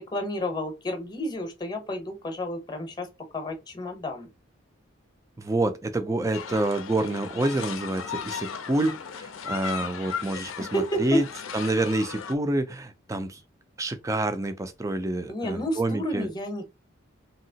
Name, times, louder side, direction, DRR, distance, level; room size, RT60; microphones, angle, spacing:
voice 1, 0.0-3.1 3.3-4.3 10.7-11.2 15.3-16.6, equal, 20° left, 0.8 m, -30 dB
voice 2, 5.4-11.2 11.5-13.4 13.8-16.3, right 2 dB, 15° right, 0.3 m, -27 dB
sound 1, 6.3-12.4, left 7 dB, 75° left, 0.5 m, -36 dB
2.8 x 2.8 x 2.7 m
head